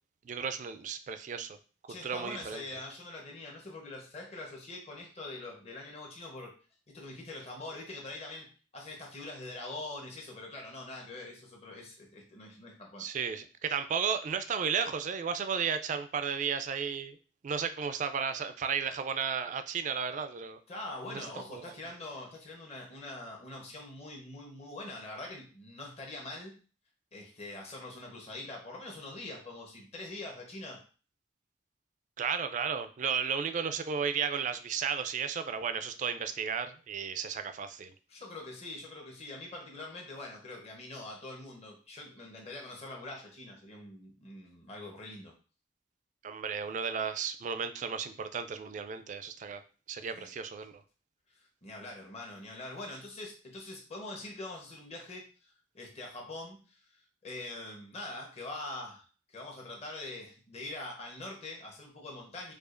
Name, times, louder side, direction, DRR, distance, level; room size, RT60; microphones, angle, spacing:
voice 1, 0.2-1.6 1.8-2.6 13.0-17.2 17.4-20.6 21.1-21.6 32.2-37.9 46.2-49.6 49.9-50.7, right 6 dB, 45° right, 10 dB, 0.3 m, -34 dB
voice 2, 1.9-6.6 6.9-13.1 20.7-26.6 27.1-30.8 38.1-45.3 50.1-50.3 51.3-55.2 55.7-56.7 57.2-62.5, left 2 dB, 35° left, 0 dB, 0.9 m, -44 dB
4.8 x 2.4 x 2.5 m, 0.37 s
head